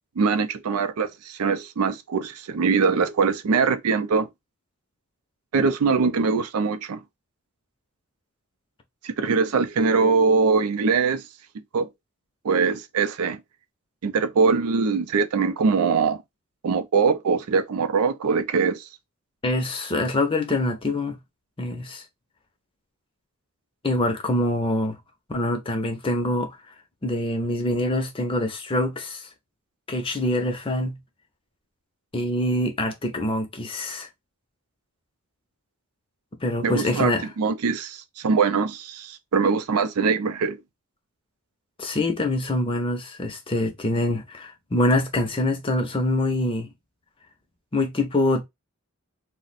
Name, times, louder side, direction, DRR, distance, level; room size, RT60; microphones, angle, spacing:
voice 1, 0.2-4.3 5.5-7.0 9.0-11.2 11.7-11.9 12.4-13.4 14.0-16.2 16.6-18.9 36.6-40.6, right 5 dB, 85° right, 0.4 m, -22 dB
voice 2, 19.4-21.2 21.6-22.0 23.8-25.0 25.3-26.6 27.0-29.3 29.9-31.0 32.1-34.1 36.4-37.3 41.8-46.7 47.7-48.4, left 1 dB, 25° left, 0.5 m, -25 dB
2.5 x 2.1 x 3.9 m
head